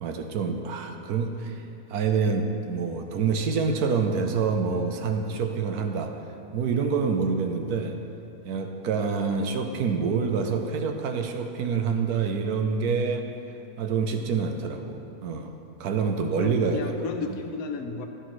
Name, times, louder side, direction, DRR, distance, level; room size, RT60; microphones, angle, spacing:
voice 1, 0.0-1.6 1.9-6.1 6.5-8.0 8.4-13.3 13.8-15.5 15.8-16.9 17.3-17.4, right 5 dB, 80° right, 5 dB, 1.3 m, -27 dB
voice 2, 7.3-7.6 16.0-16.1 16.4-18.1, left 3 dB, 75° left, 5 dB, 1.3 m, -34 dB
15.0 x 9.8 x 3.2 m, 2.8 s
omnidirectional pair, 1.6 m